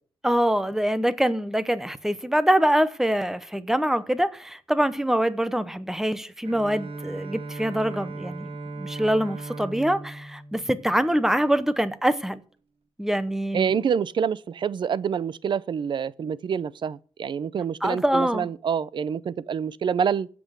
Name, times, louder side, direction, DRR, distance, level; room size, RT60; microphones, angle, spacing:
voice 1, 0.2-8.5 8.8-12.4 13.0-13.8 17.8-18.5, right 1 dB, 5° right, 0.8 m, -24 dB
Bowed string instrument, 6.4-11.7, right 3 dB, 75° right, 1.5 m, -38 dB
voice 2, 13.5-20.3, right 7 dB, 55° right, 0.5 m, -27 dB
15.5 x 6.1 x 6.6 m
wide cardioid pair, 160°, 10 cm